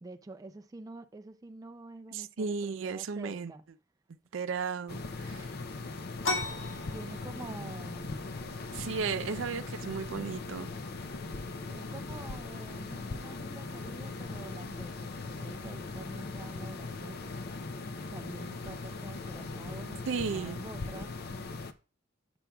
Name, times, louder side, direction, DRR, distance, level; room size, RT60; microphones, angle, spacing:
voice 1, 0.0-3.6 6.9-8.4 11.7-21.1, right 2 dB, 20° right, 0.4 m, -47 dB
voice 2, 2.1-3.5 4.3-5.5 8.7-10.7 20.1-20.6, right 5 dB, 85° right, 0.5 m, -34 dB
sound 1, 4.9-21.7, left 3 dB, 55° left, 0.5 m, -40 dB
sound 2, 6.2-15.6, left 2 dB, 80° left, 1.7 m, -42 dB
8.5 x 6.9 x 2.3 m
head